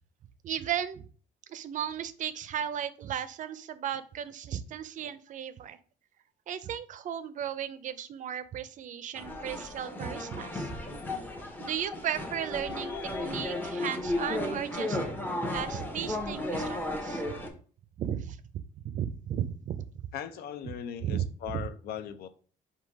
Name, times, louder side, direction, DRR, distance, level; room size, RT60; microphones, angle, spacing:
voice 1, 0.4-1.0 1.5-5.8 6.5-10.7 11.6-15.0 15.5-17.5 18.0-19.9 20.6-20.7 21.0-21.3 21.5-21.7, right 9 dB, 50° right, 0.5 m, -35 dB
sound 1, 9.2-17.5, left 1 dB, 10° left, 0.8 m, -34 dB
voice 2, 20.1-22.3, left 9 dB, 70° left, 0.6 m, -39 dB
3.8 x 2.7 x 4.7 m
cardioid pair, 110°, 17 cm